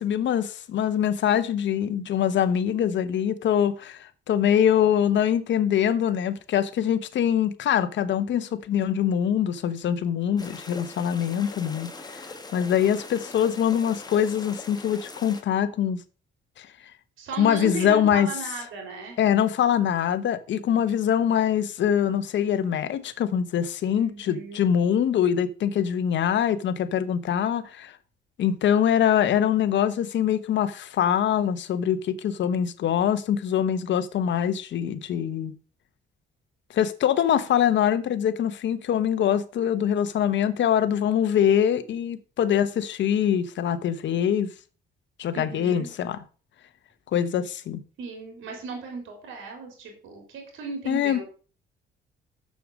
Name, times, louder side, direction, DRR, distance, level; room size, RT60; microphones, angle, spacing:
voice 1, 0.0-12.2 12.5-16.0 16.6-16.7 17.4-18.3 19.2-27.9 28.4-35.5 36.7-44.5 45.2-46.2 47.1-47.8 50.9-51.2, left 9 dB, 65° left, 1.0 m, -23 dB
sound 1, 10.4-15.4, left 3 dB, 20° left, 1.4 m, -41 dB
voice 2, 17.2-19.2 23.9-24.7 45.3-45.9 48.0-51.2, right 3 dB, 80° right, 3.8 m, -36 dB
6.8 x 6.6 x 6.2 m
cardioid pair, 90°, 20 cm